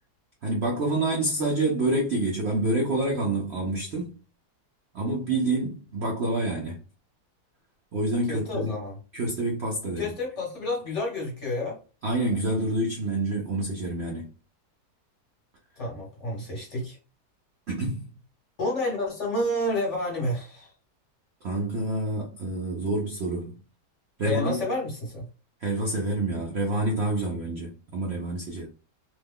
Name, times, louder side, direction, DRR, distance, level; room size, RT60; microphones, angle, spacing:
voice 1, 0.4-4.1 4.9-6.8 7.9-8.7 9.1-10.1 12.0-14.3 17.7-18.1 21.4-23.6 24.2-24.6 25.6-28.7, right 2 dB, 60° right, 0.7 m, -27 dB
voice 2, 8.3-8.9 10.0-11.8 15.8-17.0 18.6-20.7 24.2-25.2, left 1 dB, 45° left, 1.3 m, -29 dB
3.1 x 2.2 x 3.5 m
omnidirectional pair, 1.8 m